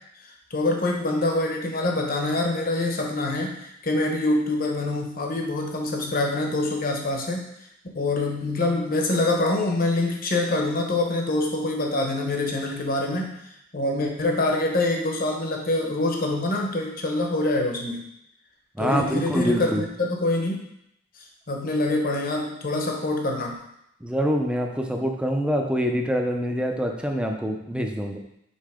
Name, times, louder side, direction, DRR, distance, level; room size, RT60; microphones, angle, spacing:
voice 1, 0.5-7.4 7.9-13.3 13.7-18.0 18.8-20.6 21.5-23.5, left 2 dB, 50° left, 1 dB, 1.1 m, -25 dB
voice 2, 18.7-19.9 24.0-28.2, equal, 5° right, 3 dB, 0.6 m, -25 dB
5.6 x 3.8 x 5.0 m, 0.78 s
head